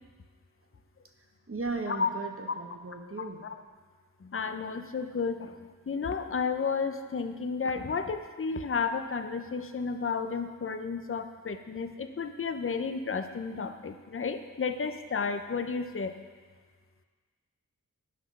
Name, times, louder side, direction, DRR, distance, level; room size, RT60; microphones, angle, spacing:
voice 1, 1.5-3.4, right 3 dB, 40° right, 3 dB, 1.0 m, -36 dB
voice 2, 3.2-3.5 4.2-16.1, left 5 dB, 40° left, 8 dB, 0.6 m, -32 dB
8.4 x 5.9 x 5.9 m, 1.5 s
wide cardioid pair, 45°, 33 cm